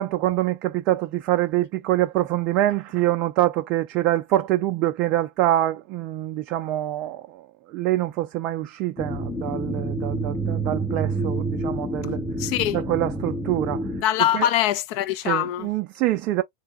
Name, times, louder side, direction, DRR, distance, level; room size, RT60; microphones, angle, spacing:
voice 1, 0.0-12.2 12.7-13.9 14.3-14.5 15.2-16.4, right 15 dB, 40° right, 0.3 m, -25 dB
sound 1, 9.0-14.0, right 2 dB, 5° left, 0.8 m, -28 dB
voice 2, 12.4-12.8 14.0-15.7, left 12 dB, 45° left, 0.4 m, -23 dB
3.3 x 2.1 x 3.4 m
figure-of-eight pair, 90°, 0 cm